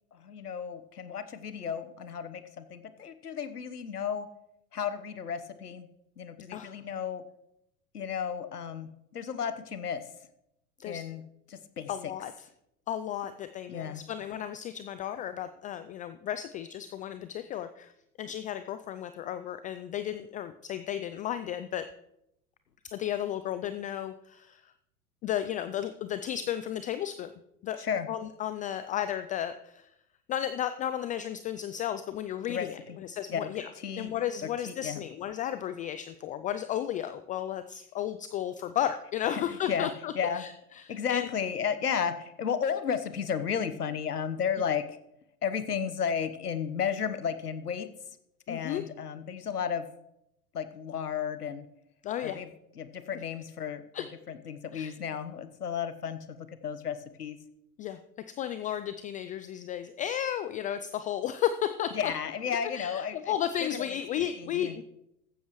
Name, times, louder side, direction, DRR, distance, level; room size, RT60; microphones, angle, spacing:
voice 1, 0.1-4.3 4.7-5.9 6.2-7.2 7.9-10.0 10.9-11.2 11.5-11.9 13.7-14.1 27.8-28.1 32.5-33.0 33.3-33.5 33.8-34.1 34.7-35.0 39.3-39.4 39.7-39.9 40.1-40.4 40.9-44.9 45.4-47.9 48.5-49.9 50.5-51.7 52.2-52.5 52.8-53.8 54.3-57.4 61.9-63.3 63.6-63.9 64.4-64.8, left 7 dB, 90° left, 11 dB, 1.2 m, -33 dB
voice 2, 11.9-12.5 12.9-17.9 18.2-21.9 22.9-24.7 25.2-27.3 27.6-27.8 28.1-29.9 30.3-33.7 34.0-41.3 48.5-48.8 52.0-52.4 53.9-54.1 54.7-54.9 57.8-58.0 58.3-62.1 62.7-64.8, left 10 dB, 20° left, 11 dB, 0.3 m, -34 dB
15.0 x 12.5 x 3.1 m, 0.81 s
hypercardioid pair, 95°, 45 cm